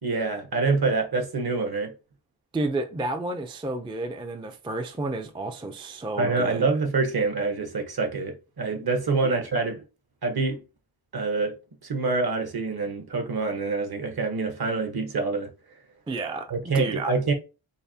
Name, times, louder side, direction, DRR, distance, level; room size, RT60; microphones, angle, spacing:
voice 1, 0.0-1.9 6.2-9.8 10.2-10.6 11.1-11.5 11.8-15.5 16.5-17.3, right 3 dB, 55° right, 1.0 m, -26 dB
voice 2, 2.5-6.6 9.2-9.4 16.1-17.1, right 2 dB, 15° right, 0.3 m, -31 dB
5.4 x 2.1 x 2.7 m
wide cardioid pair, 105°, 45 cm